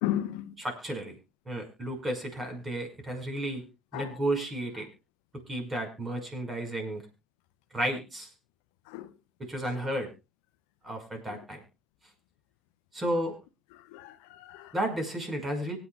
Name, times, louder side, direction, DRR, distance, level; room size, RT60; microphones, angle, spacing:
voice 1, 0.0-0.6 3.9-4.2 8.9-9.1 9.6-9.8 11.3-11.4 13.7-14.7, left 13 dB, 70° left, 0.6 m, -35 dB
voice 2, 0.6-1.1 1.5-3.6 3.9-4.9 5.5-7.0 7.7-8.3 9.4-10.1 10.8-11.6 12.9-13.4 14.7-15.8, right 1 dB, 25° right, 5.4 m, -32 dB
24.5 x 8.9 x 2.4 m
hypercardioid pair, 65°, 0 cm